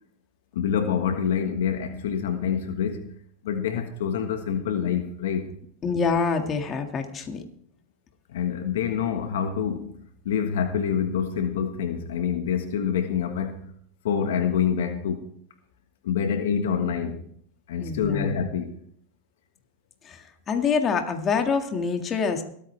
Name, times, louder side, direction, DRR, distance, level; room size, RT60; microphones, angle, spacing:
voice 1, 0.5-3.1 3.4-5.5 8.3-9.9 10.2-13.6 14.0-15.3 16.0-17.2 17.7-18.7, left 7 dB, 80° left, 1.3 m, -26 dB
voice 2, 5.8-7.4 17.8-18.4 20.0-22.4, left 5 dB, 30° left, 1.9 m, -26 dB
22.5 x 9.2 x 3.3 m
hypercardioid pair, 110°, 0 cm